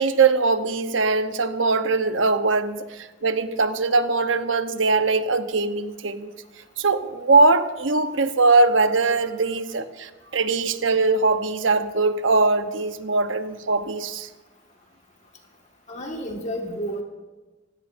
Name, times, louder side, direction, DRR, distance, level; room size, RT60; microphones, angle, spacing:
voice 1, 0.0-6.3 6.8-14.3, right 3 dB, 85° right, 9 dB, 1.0 m, -21 dB
voice 2, 15.9-17.0, equal, 40° left, 1 dB, 1.8 m, -30 dB
27.5 x 16.5 x 2.6 m, 1.2 s
head